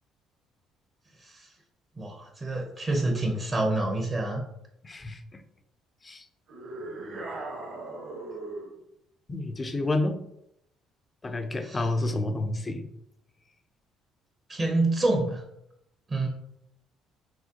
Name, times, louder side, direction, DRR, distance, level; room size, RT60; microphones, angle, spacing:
voice 1, 2.0-4.5 11.6-11.8 14.5-15.4 16.1-16.3, right 2 dB, 30° right, 1 dB, 0.8 m, -27 dB
voice 2, 4.8-5.4 6.0-6.2 9.3-10.2 11.2-12.9, left 2 dB, 25° left, 7 dB, 0.5 m, -29 dB
sound 1, 6.5-8.8, right 2 dB, 55° right, 1.3 m, -38 dB
4.9 x 3.2 x 2.9 m, 0.80 s
cardioid pair, 105°, 0 cm